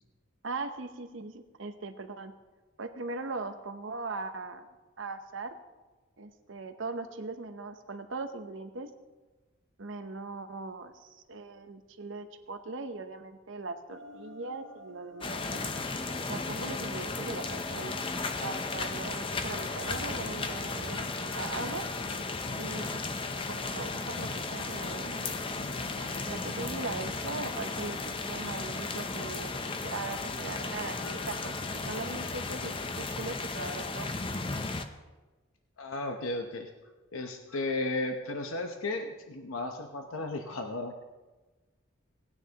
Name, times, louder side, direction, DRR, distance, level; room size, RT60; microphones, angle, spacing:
voice 1, 0.4-2.3 2.8-4.7 5.0-5.5 6.2-8.9 9.8-15.6 16.2-18.0 18.4-21.0 21.3-21.8 22.6-23.0 23.5-25.2 26.3-29.6 29.8-34.2, right 3 dB, 65° right, 8 dB, 0.8 m, -39 dB
sound 1, 13.9-31.7, equal, 70° left, 2.0 m, -50 dB
sound 2, 15.2-34.9, left 3 dB, 25° left, 0.5 m, -35 dB
voice 2, 35.8-36.7 37.1-40.9, left 2 dB, 85° left, 4 dB, 0.9 m, -34 dB
18.0 x 9.8 x 2.9 m, 1.2 s
head